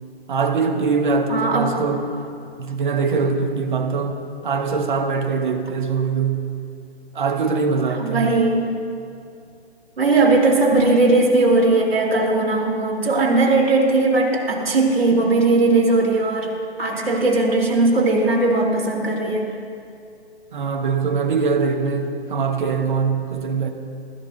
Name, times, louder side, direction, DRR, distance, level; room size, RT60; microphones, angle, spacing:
voice 1, 0.3-2.0 2.6-6.4 7.1-8.3 20.5-23.7, right 5 dB, 45° right, 1.3 m, -22 dB
voice 2, 1.3-1.7 8.0-8.6 10.0-19.5, right 2 dB, 60° right, 3.3 m, -18 dB
22.0 x 14.0 x 2.6 m
figure-of-eight pair, 145°, 33 cm